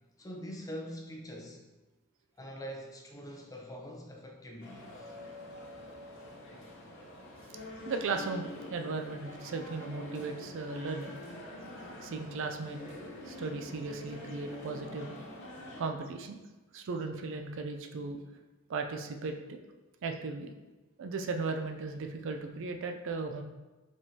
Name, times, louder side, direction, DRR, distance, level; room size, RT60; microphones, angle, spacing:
voice 1, 0.2-1.6 2.4-5.2, equal, 15° left, 1 dB, 0.6 m, -44 dB
sound 1, 4.6-15.8, left 1 dB, 60° left, 0.9 m, -46 dB
voice 2, 7.9-11.1 12.0-12.8 13.3-15.2 15.8-16.4 16.7-18.2 18.7-19.6 20.0-20.5 21.0-23.4, right 4 dB, 60° right, 5 dB, 0.4 m, -36 dB
5.1 x 3.6 x 2.8 m, 1.1 s
head